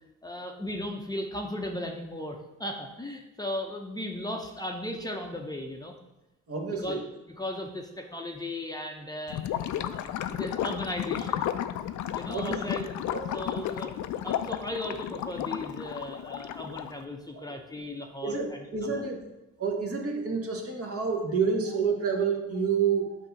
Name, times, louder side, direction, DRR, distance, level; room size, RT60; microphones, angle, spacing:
voice 1, 0.2-5.9 6.7-7.0 7.3-9.4 9.8-11.5 12.1-13.9 14.2-19.1 23.1-23.2, left 1 dB, 15° left, 1 dB, 0.7 m, -36 dB
voice 2, 6.5-7.0 12.2-12.5 13.1-13.2 17.3-17.4 18.2-19.2 19.6-23.1, right 5 dB, 50° right, 1 dB, 1.4 m, -28 dB
Gurgling / Liquid, 9.3-17.0, left 11 dB, 70° left, 0.5 m, -33 dB
8.1 x 2.8 x 5.7 m, 1.0 s
cardioid pair, 90°, 30 cm